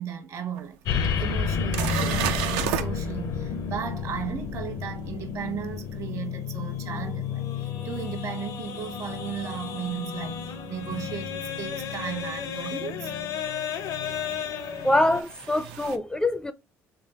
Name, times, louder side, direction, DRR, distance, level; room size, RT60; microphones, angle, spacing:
voice 1, 0.0-13.1, right 8 dB, 60° right, 1.1 m, -36 dB
sound 1, 0.6-0.7 1.2-1.3 1.7-2.9 8.0-8.1 10.9-11.0 12.6-12.7 14.1-16.0, right 10 dB, 90° right, 0.4 m, -31 dB
sound 2, 0.9-15.2, left 6 dB, 65° left, 0.6 m, -31 dB
voice 2, 14.8-16.5, left 1 dB, 10° left, 0.4 m, -24 dB
3.7 x 3.2 x 2.9 m
supercardioid pair, 80°, 6 cm